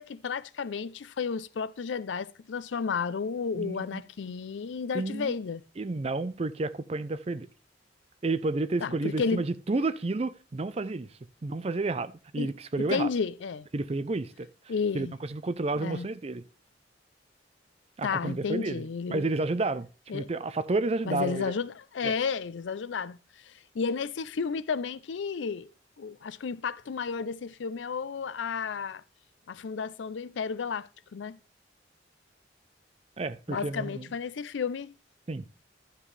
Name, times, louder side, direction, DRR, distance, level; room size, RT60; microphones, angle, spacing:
voice 1, 0.0-5.6 8.8-9.4 12.4-12.5 12.8-13.7 14.7-15.2 15.8-16.1 18.0-19.3 20.1-20.3 21.1-23.2 23.5-25.7 26.0-29.0 29.5-31.4 33.5-34.9, left 5 dB, 85° left, 0.5 m, -32 dB
voice 2, 3.5-4.1 4.9-5.3 5.8-7.5 8.2-11.1 11.4-13.1 13.7-14.5 14.9-16.4 18.0-19.9 20.1-21.5 22.0-22.1 33.2-34.1 35.3-35.4, right 3 dB, 35° right, 0.5 m, -31 dB
11.5 x 7.4 x 3.3 m
head